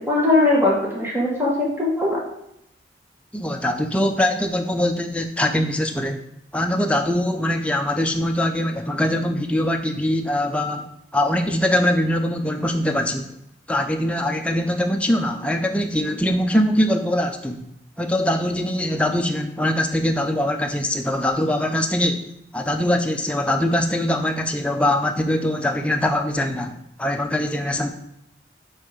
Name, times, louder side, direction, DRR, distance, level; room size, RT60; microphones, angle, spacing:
voice 1, 0.1-2.2, left 2 dB, 15° right, -5 dB, 1.4 m, -20 dB
voice 2, 3.3-6.2 6.5-13.3 13.7-17.6 18.0-22.2 22.5-27.9, left 1 dB, 5° left, 3 dB, 0.5 m, -22 dB
6.3 x 3.7 x 5.0 m, 0.79 s
head